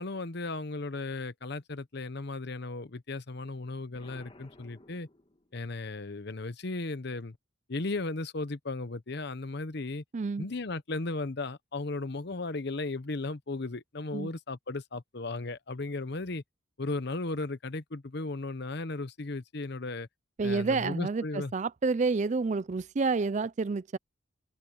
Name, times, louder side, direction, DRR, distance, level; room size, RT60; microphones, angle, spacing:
voice 1, 0.0-5.1 5.5-7.4 7.7-10.0 10.4-16.4 16.8-20.1 20.4-21.5, left 2 dB, 55° left, 0.9 m, -36 dB
Explosion, 3.9-5.8, left 1 dB, 30° left, 1.9 m, -55 dB
voice 2, 10.1-10.5 14.1-14.3 20.4-24.0, right 4 dB, 35° right, 0.4 m, -29 dB
open air
head